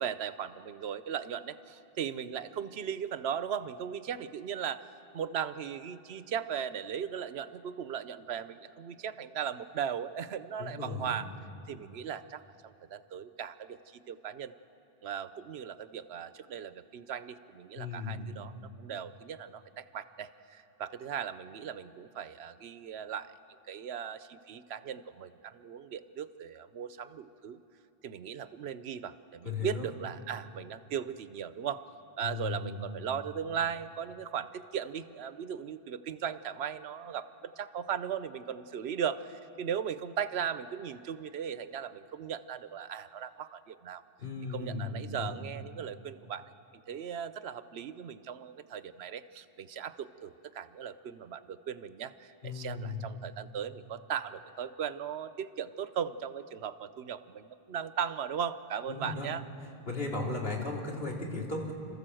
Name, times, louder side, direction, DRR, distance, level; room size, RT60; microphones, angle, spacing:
voice 1, 0.0-4.8 5.1-11.3 11.7-14.5 15.0-23.3 23.7-27.6 28.0-31.8 32.2-44.0 44.5-46.4 46.9-59.4, right 8 dB, 85° right, 13 dB, 1.0 m, -38 dB
voice 2, 10.6-11.3 17.7-18.3 29.4-29.9 32.2-32.9 44.2-45.3 52.4-53.1 58.9-59.3 59.9-61.7, left 3 dB, 70° left, -2 dB, 3.0 m, -36 dB
29.5 x 13.5 x 7.7 m, 2.8 s
omnidirectional pair, 1.0 m